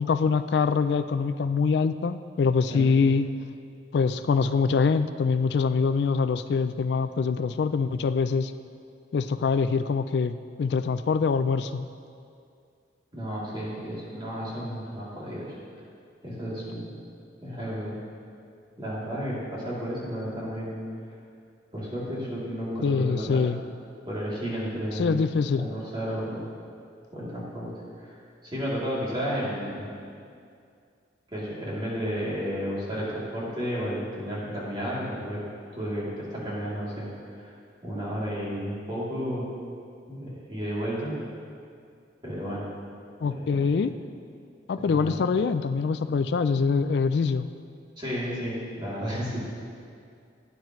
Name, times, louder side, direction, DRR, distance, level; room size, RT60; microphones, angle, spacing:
voice 1, 0.0-3.3 3.9-8.5 9.1-11.9 22.8-23.6 24.9-25.7 43.2-43.9 44.7-47.5, left 5 dB, 65° left, 11 dB, 0.3 m, -24 dB
voice 2, 13.1-15.5 16.2-16.9 17.4-18.0 18.8-20.7 21.7-23.4 24.1-25.2 25.5-26.4 27.1-27.7 28.0-28.1 28.4-29.9 31.3-35.4 35.7-37.1 37.3-37.5 37.8-39.5 40.1-41.2 42.2-42.6 43.2-43.9 44.9-45.2 48.0-49.4, equal, 25° right, -8 dB, 3.0 m, -32 dB
16.0 x 9.4 x 3.2 m, 2.3 s
head